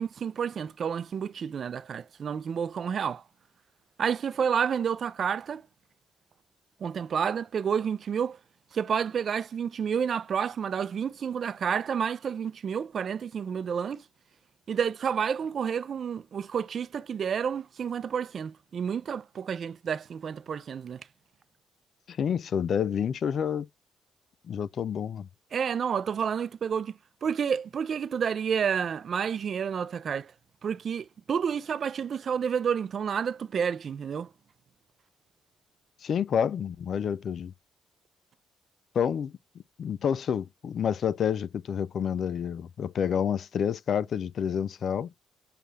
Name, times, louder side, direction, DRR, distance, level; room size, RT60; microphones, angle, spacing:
voice 1, 0.0-3.2 4.0-5.6 6.8-8.4 8.7-14.0 14.7-21.1 25.5-30.3 30.6-34.3, right 7 dB, 55° right, 0.4 m, -30 dB
voice 2, 22.1-23.7 24.5-25.3 36.0-37.5 39.0-39.3 39.8-45.1, left 8 dB, 60° left, 0.3 m, -28 dB
6.6 x 2.4 x 3.2 m
cardioid pair, 90°, 0 cm